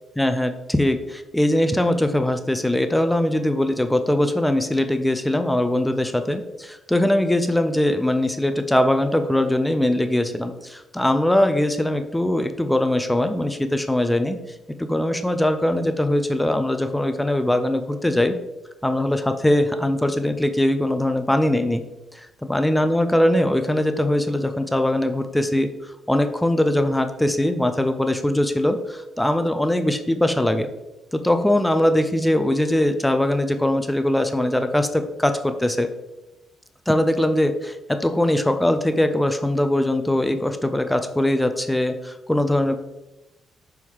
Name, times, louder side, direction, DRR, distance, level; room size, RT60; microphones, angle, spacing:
voice 1, 0.2-14.4 14.8-18.3 18.8-21.8 22.1-30.7 31.1-35.9 36.9-42.8, left 1 dB, 5° left, 8 dB, 0.5 m, -21 dB
6.2 x 4.6 x 3.6 m, 0.97 s
cardioid pair, 90°, 0 cm